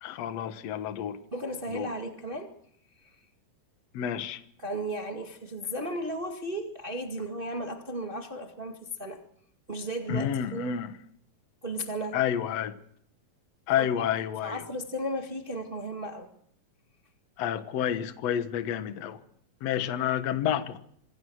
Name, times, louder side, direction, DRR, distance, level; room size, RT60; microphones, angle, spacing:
voice 1, 0.0-1.2 1.7-1.9 3.9-4.4 10.1-10.9 12.1-12.7 13.7-14.6 17.4-19.2 19.6-20.8, left 9 dB, 60° left, 10 dB, 2.1 m, -29 dB
voice 2, 1.3-2.5 3.0-3.1 4.6-9.2 9.7-10.8 11.6-12.2 13.8-13.9 14.4-16.3, right 1 dB, 20° right, 3 dB, 1.7 m, -35 dB
26.5 x 19.0 x 6.4 m, 0.68 s
omnidirectional pair, 4.0 m